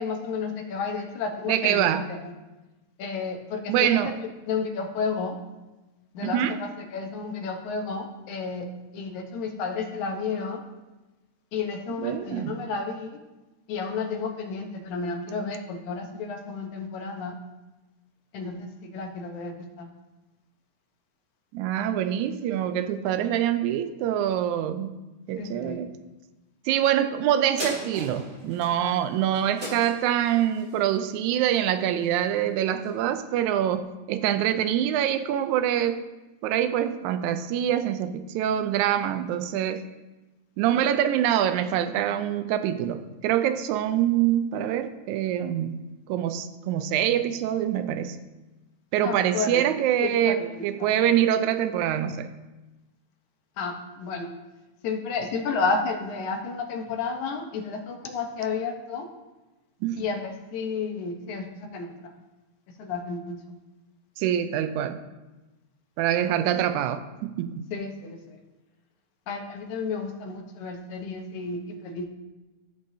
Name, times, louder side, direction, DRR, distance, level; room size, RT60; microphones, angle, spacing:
voice 1, 0.0-2.4 3.0-5.4 6.1-8.7 8.9-10.6 11.5-13.2 13.7-17.4 18.3-19.9 25.4-25.8 28.8-29.0 49.0-50.9 53.6-54.3 54.8-59.0 60.0-62.2 62.8-63.4 67.7-68.4 69.3-72.1, left 4 dB, 85° left, 2.4 m, -32 dB
voice 2, 1.5-2.0 3.7-4.1 6.2-6.6 12.0-12.6 21.5-24.9 25.3-25.9 26.7-36.0 36.4-39.8 40.6-45.8 46.1-48.2 48.9-52.3 59.8-60.0 64.2-65.0 66.0-67.7, right 10 dB, 85° right, 2.0 m, -25 dB
sound 1, 27.6-32.3 32.8-32.9, right 1 dB, 25° right, 4.1 m, -39 dB
14.0 x 7.9 x 2.8 m
omnidirectional pair, 3.3 m